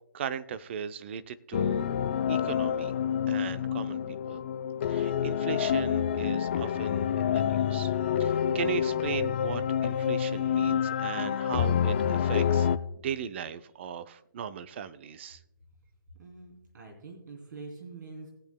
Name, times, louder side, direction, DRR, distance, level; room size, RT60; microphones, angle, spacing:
voice 1, 0.1-1.9 2.3-2.9 3.3-4.4 4.8-7.9 8.2-12.7 13.0-15.4, right 8 dB, 30° right, 13 dB, 0.5 m, -37 dB
sound 1, 1.5-12.8, left 8 dB, 30° left, 0.4 m, -28 dB
voice 2, 16.2-18.3, right 3 dB, 55° right, 0 dB, 3.2 m, -45 dB
19.5 x 8.4 x 2.2 m, 0.92 s
hypercardioid pair, 155°, 12 cm